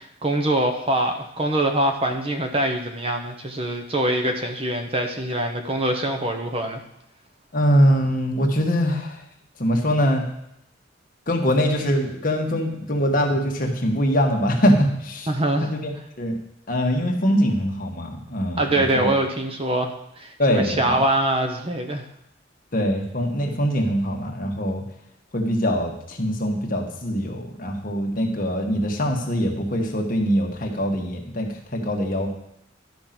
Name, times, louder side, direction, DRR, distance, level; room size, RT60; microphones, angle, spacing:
voice 1, 0.0-6.8 15.3-15.7 18.6-22.0, right 1 dB, 30° right, 5 dB, 1.0 m, -24 dB
voice 2, 7.5-9.2 9.6-10.2 11.3-15.3 15.6-15.9 16.2-16.4 16.7-19.1 20.4-20.9 22.7-24.8 25.3-32.3, equal, 45° left, 1 dB, 1.5 m, -23 dB
12.0 x 5.2 x 6.0 m, 0.79 s
head